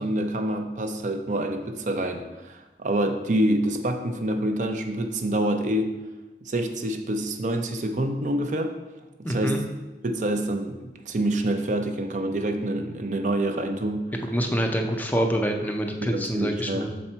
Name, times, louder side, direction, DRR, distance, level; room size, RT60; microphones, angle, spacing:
voice 1, 0.0-5.9 6.4-8.7 9.2-9.6 10.0-10.8 11.1-14.0 16.0-16.9, right 1 dB, 45° right, 6 dB, 0.5 m, -26 dB
voice 2, 9.2-9.6 14.3-16.9, equal, 10° left, 3 dB, 0.4 m, -26 dB
6.7 x 4.2 x 4.4 m, 1.1 s
head